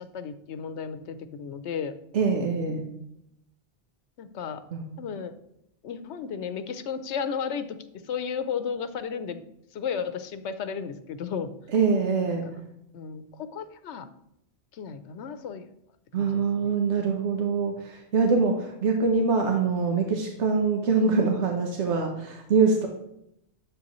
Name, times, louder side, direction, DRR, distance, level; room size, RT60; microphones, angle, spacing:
voice 1, 0.0-1.9 4.2-4.6 5.0-5.4 5.8-9.4 9.7-11.5 12.3-12.6 12.9-14.1 14.7-15.7 16.2-16.8, left 6 dB, 80° left, 11 dB, 1.0 m, -34 dB
voice 2, 2.1-2.9 4.7-4.9 11.7-12.5 16.1-22.9, right 4 dB, 85° right, 2 dB, 1.2 m, -24 dB
9.7 x 7.0 x 3.1 m, 0.80 s
omnidirectional pair, 1.2 m